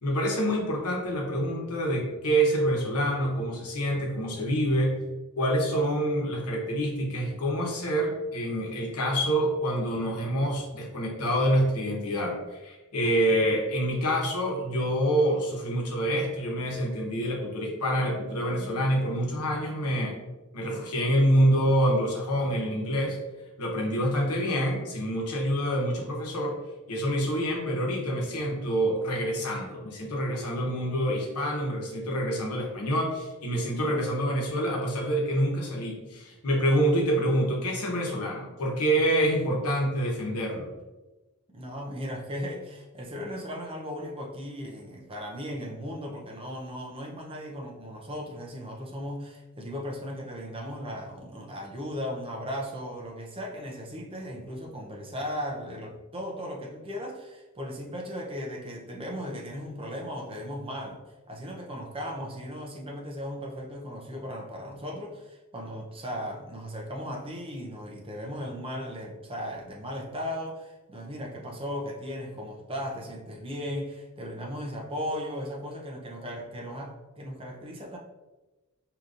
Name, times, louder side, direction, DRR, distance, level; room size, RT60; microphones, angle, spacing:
voice 1, 0.0-5.0 5.4-20.2 20.5-23.2 23.6-26.6 26.9-40.7, equal, 85° left, 0 dB, 1.0 m, -26 dB
voice 2, 41.5-61.0 61.3-78.0, equal, 25° right, 0 dB, 0.6 m, -37 dB
5.0 x 2.9 x 2.5 m, 1.1 s
head